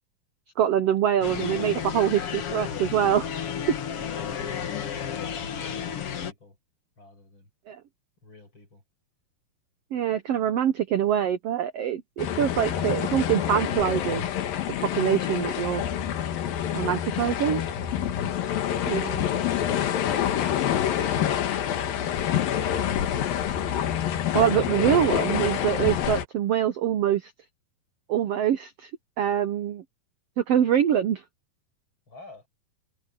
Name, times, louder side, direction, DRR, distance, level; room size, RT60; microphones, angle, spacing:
voice 1, 0.6-3.3 7.7-7.8 9.9-14.2 14.8-15.8 16.7-17.6 18.9-19.1 24.3-27.3 28.1-28.9 29.2-29.8 30.4-31.2, right 10 dB, 80° right, 1.4 m, -24 dB
sound 1, 1.2-6.3, left 8 dB, 55° left, 1.9 m, -32 dB
voice 2, 3.9-5.3 5.6-6.6 7.0-7.5 8.2-8.8 18.4-19.6 32.1-32.5, left 3 dB, 35° left, 6.7 m, -48 dB
sound 2, 12.2-26.3, left 10 dB, 80° left, 3.3 m, -27 dB
omnidirectional pair, 4.1 m